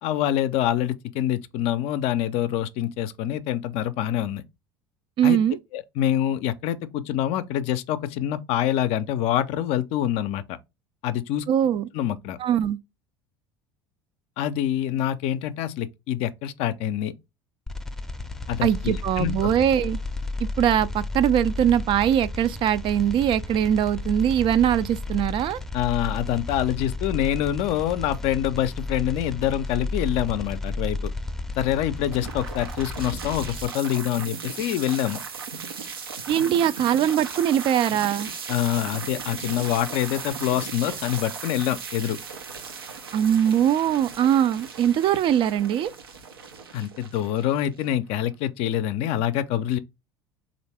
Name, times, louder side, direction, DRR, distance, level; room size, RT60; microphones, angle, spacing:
voice 1, 0.0-4.4 5.2-5.4 5.7-10.6 11.0-11.5 11.9-12.4 14.4-17.1 18.5-19.5 25.7-31.1 31.6-35.2 38.5-42.2 46.7-49.8, left 11 dB, 60° left, 0.4 m, -26 dB
voice 2, 5.2-5.6 11.5-11.8 12.4-12.8 18.6-20.0 20.6-25.6 36.3-38.3 43.1-45.9, right 10 dB, 45° right, 0.3 m, -21 dB
sound 1, 17.7-33.7, left 2 dB, 5° left, 0.6 m, -33 dB
sound 2, 32.1-48.1, right 6 dB, 90° right, 0.6 m, -37 dB
3.4 x 2.5 x 3.2 m
hypercardioid pair, 75°, 12 cm